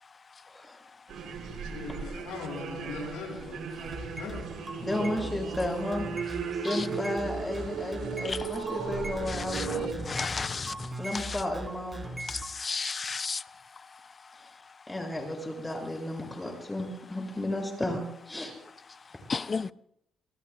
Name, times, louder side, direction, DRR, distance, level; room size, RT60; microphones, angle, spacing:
voice 1, 0.5-0.8 4.8-6.1 6.6-10.1 11.0-12.1 14.4-14.5 14.9-18.5, left 1 dB, 15° left, 7.1 m, -33 dB
sound 1, 1.1-9.9, right 6 dB, 75° right, 3.5 m, -36 dB
voice 2, 1.6-4.4, left 4 dB, 90° left, 7.4 m, -40 dB
sound 2, 3.9-12.5, right 1 dB, 20° right, 3.9 m, -40 dB
voice 3, 10.1-10.7 12.6-13.4 19.3-19.7, left 5 dB, 35° left, 0.5 m, -31 dB
27.5 x 20.5 x 2.4 m
cardioid pair, 90°, 0 cm